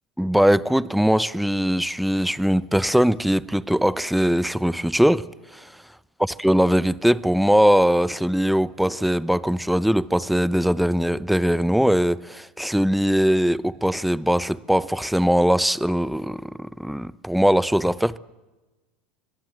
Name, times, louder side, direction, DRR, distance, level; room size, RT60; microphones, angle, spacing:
voice 1, 0.2-5.2 6.4-18.2, equal, ahead, 0.7 m, -21 dB
25.5 x 21.0 x 7.6 m
hypercardioid pair, 95°, 4 cm